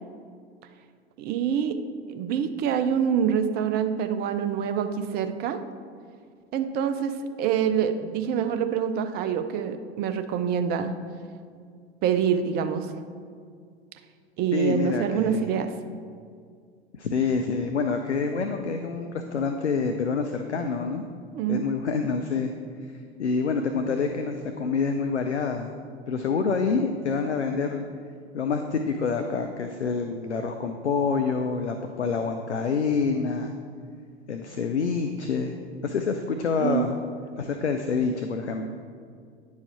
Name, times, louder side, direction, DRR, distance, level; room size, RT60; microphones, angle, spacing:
voice 1, 1.2-1.8 2.1-5.6 6.5-10.9 12.0-12.9 14.4-15.7 21.3-21.6 36.6-36.8, right 8 dB, 30° right, 9 dB, 0.5 m, -26 dB
voice 2, 14.5-15.5 16.9-21.0 21.5-22.5 23.2-25.7 26.1-27.8 28.3-33.5 34.3-35.6 35.8-37.0 37.4-38.7, left 5 dB, 85° left, 6 dB, 0.5 m, -27 dB
9.6 x 4.8 x 4.2 m, 2.2 s
figure-of-eight pair, 85°, 33 cm